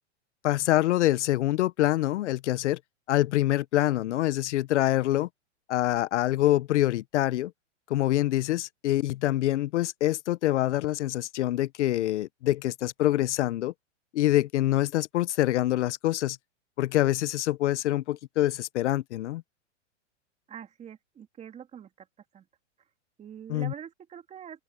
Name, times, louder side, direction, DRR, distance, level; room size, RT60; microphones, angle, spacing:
voice 1, 0.4-2.8 3.1-5.3 5.7-7.5 7.9-13.7 14.1-16.4 16.8-19.4 23.5-23.7, left 14 dB, 70° left, 0.8 m, -25 dB
voice 2, 20.5-22.1 22.3-22.4 23.2-24.6, right 9 dB, 20° right, 2.9 m, -44 dB
open air
hypercardioid pair, 150°, 37 cm